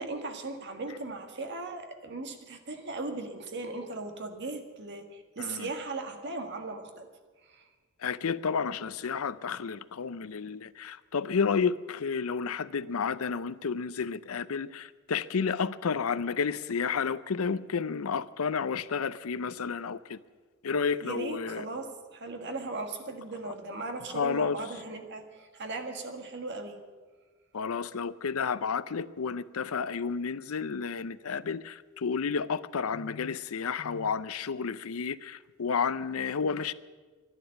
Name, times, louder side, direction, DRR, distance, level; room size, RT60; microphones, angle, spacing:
voice 1, 0.0-7.1 7.4-7.7 21.0-26.8, right 3 dB, 55° right, 5 dB, 1.7 m, -38 dB
voice 2, 8.0-20.2 20.6-21.6 23.4-23.5 24.1-24.6 27.5-36.7, left 5 dB, 80° left, 16 dB, 0.6 m, -31 dB
11.5 x 11.0 x 10.0 m, 1.4 s
head